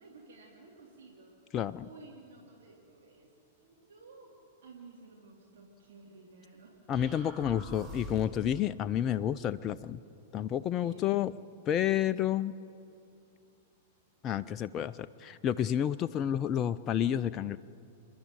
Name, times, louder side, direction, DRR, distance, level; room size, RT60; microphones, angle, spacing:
voice 1, 0.0-1.5 1.8-3.3 3.6-7.3 10.8-11.3, right 3 dB, 65° right, -1 dB, 3.4 m, -54 dB
voice 2, 1.5-1.8 6.9-10.0 10.3-11.3 11.7-12.5 14.2-17.6, left 10 dB, 30° left, 11 dB, 0.5 m, -30 dB
sound 1, 6.9-8.5, right 1 dB, 15° right, 4.4 m, -45 dB
28.5 x 12.0 x 9.3 m, 2.7 s
figure-of-eight pair, 100°, 0 cm